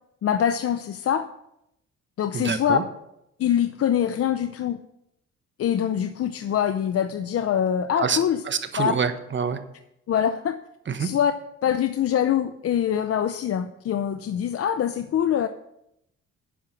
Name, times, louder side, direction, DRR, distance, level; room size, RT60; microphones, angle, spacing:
voice 1, 0.2-1.3 2.2-2.8 3.4-4.8 5.6-8.4 8.8-8.9 10.1-10.6 11.0-11.3 11.6-15.5, left 9 dB, 50° left, 10 dB, 0.6 m, -24 dB
voice 2, 2.3-2.8 8.0-8.2 8.5-9.6 10.9-11.1, right 6 dB, 40° right, 9 dB, 1.1 m, -26 dB
10.0 x 6.5 x 5.8 m, 0.81 s
cardioid pair, 90°, 30 cm